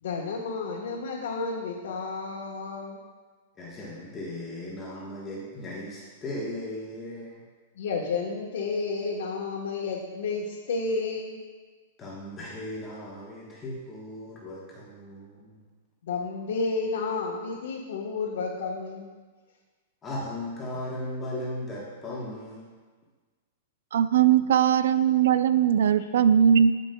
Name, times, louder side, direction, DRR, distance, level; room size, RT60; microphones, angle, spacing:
voice 1, 0.0-3.0 7.7-11.4 16.0-19.1, left 4 dB, 80° left, -4 dB, 1.1 m, -31 dB
voice 2, 3.6-7.4 12.0-15.6 20.0-22.7 24.4-24.5, left 1 dB, 20° left, -4 dB, 1.2 m, -37 dB
voice 3, 23.9-26.7, right 9 dB, 75° right, 13 dB, 0.3 m, -20 dB
15.0 x 5.2 x 2.2 m, 1.4 s
hypercardioid pair, 150°, 0 cm